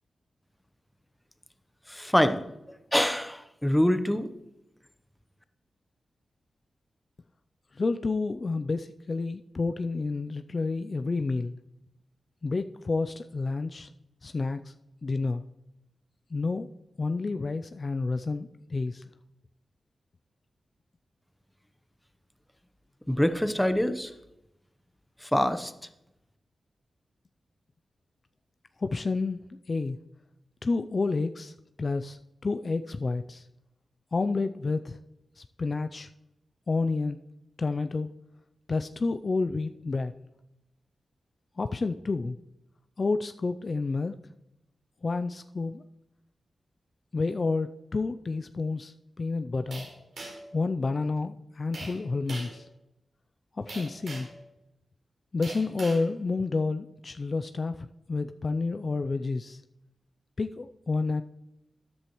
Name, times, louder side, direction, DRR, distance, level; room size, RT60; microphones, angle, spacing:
voice 1, 1.9-2.4 2.9-4.3 23.1-24.1 25.2-25.7, equal, 5° left, 9 dB, 0.8 m, -25 dB
voice 2, 7.7-11.5 12.4-13.9 14.2-14.7 15.0-15.4 16.3-16.7 17.0-19.1 28.8-29.4 29.7-30.0 30.6-33.5 34.1-35.0 35.4-36.1 36.7-37.2 37.6-38.1 38.7-40.1 41.6-42.4 43.0-44.1 45.0-45.8 47.1-49.9 50.5-52.7 53.5-54.3 55.3-59.6 60.4-61.2, left 3 dB, 45° left, 9 dB, 0.4 m, -30 dB
sound 1, 49.7-50.5 51.7-52.0 52.3-52.6 53.7-54.4 55.4-56.0, right 2 dB, 80° right, 4.5 m, -41 dB
13.0 x 10.0 x 3.1 m, 0.88 s
wide cardioid pair, 90°, 0 cm